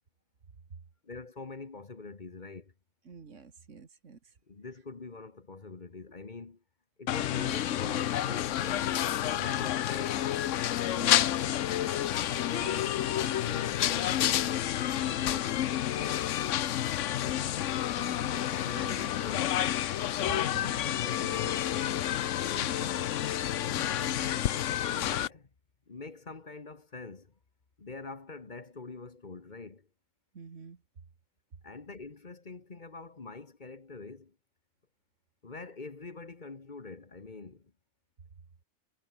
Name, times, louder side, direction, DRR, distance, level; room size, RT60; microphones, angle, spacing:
voice 1, 1.0-2.7 4.5-6.6 7.0-10.2 12.4-16.3 18.2-19.7 20.8-22.2 22.4-23.2 24.8-25.5 25.9-27.3 27.8-29.9 31.6-34.4 35.4-37.7, left 3 dB, 40° left, 1.5 m, -44 dB
voice 2, 3.1-4.3 10.9-11.5 18.0-18.5 20.2-21.0 22.6-22.8 23.7-24.3 30.3-30.8, right 5 dB, 80° right, 2.2 m, -47 dB
sound 1, 7.1-25.3, left 12 dB, 85° left, 1.0 m, -29 dB
omnidirectional pair, 1.3 m